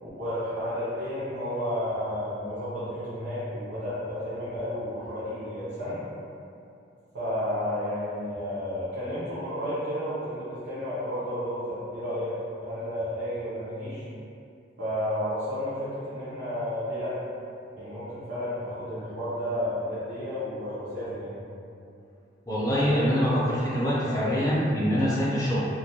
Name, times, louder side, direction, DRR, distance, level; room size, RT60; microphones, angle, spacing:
voice 1, 0.0-6.0 7.1-12.3 12.6-14.0 14.8-17.2 17.7-21.3 24.0-24.3, equal, 65° right, -13 dB, 0.6 m, -32 dB
voice 2, 22.5-25.7, equal, 20° left, -9 dB, 0.5 m, -24 dB
2.3 x 2.1 x 2.8 m, 2.6 s
head